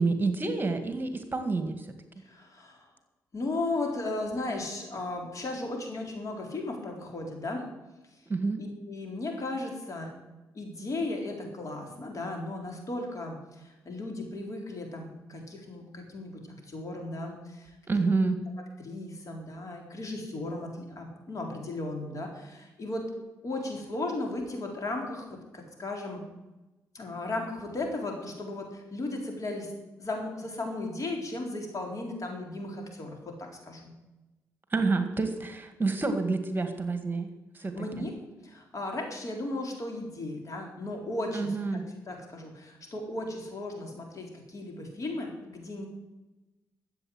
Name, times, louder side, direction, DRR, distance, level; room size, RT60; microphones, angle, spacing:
voice 1, 0.0-1.9 8.3-8.6 17.9-18.5 34.7-37.3 37.5-38.1 41.3-41.9, right 3 dB, 30° right, 8 dB, 1.9 m, -28 dB
voice 2, 2.2-2.9 3.3-7.6 8.6-10.1 10.5-18.1 18.8-23.0 23.4-26.2 26.9-29.7 30.0-33.9 37.7-38.1 38.4-41.8 42.1-45.9, left 2 dB, 50° left, 2 dB, 4.1 m, -36 dB
13.0 x 8.2 x 7.9 m, 1.1 s
cardioid pair, 65°, 7 cm